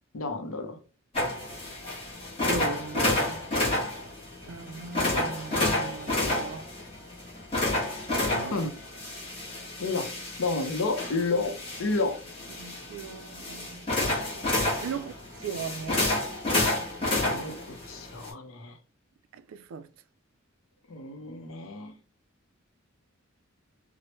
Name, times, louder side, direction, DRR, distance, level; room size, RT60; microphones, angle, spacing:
voice 1, 0.1-0.8 8.5-8.7 9.8-10.1 10.4-12.2 17.2-18.8 20.9-22.0, left 3 dB, 75° left, 0.6 m, -31 dB
sound 1, 1.1-18.3, left 2 dB, 25° left, 1.0 m, -30 dB
voice 2, 2.4-3.5 4.5-6.7 8.3-8.7 12.6-13.9 14.6-15.1 15.4-16.1 19.3-19.9, right 5 dB, 75° right, 0.3 m, -38 dB
3.0 x 2.0 x 2.9 m
head